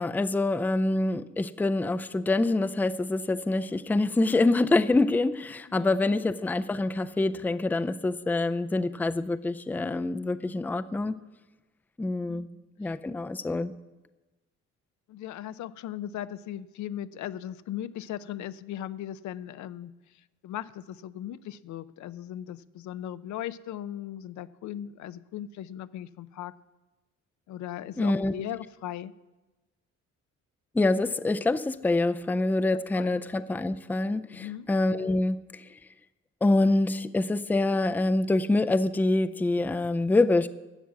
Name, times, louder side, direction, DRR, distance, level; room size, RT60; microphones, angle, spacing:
voice 1, 0.0-11.2 12.0-12.5 12.8-13.7 28.0-28.3 30.7-35.8 36.4-40.5, left 2 dB, 5° left, 11 dB, 0.4 m, -26 dB
voice 2, 5.7-6.1 12.3-12.5 12.8-12.9 13.5-13.6 15.1-26.5 27.5-29.1 32.7-33.1 34.3-34.7, left 11 dB, 75° left, 14 dB, 0.5 m, -38 dB
12.5 x 6.2 x 8.3 m, 1.1 s
cardioid pair, 90°, 30 cm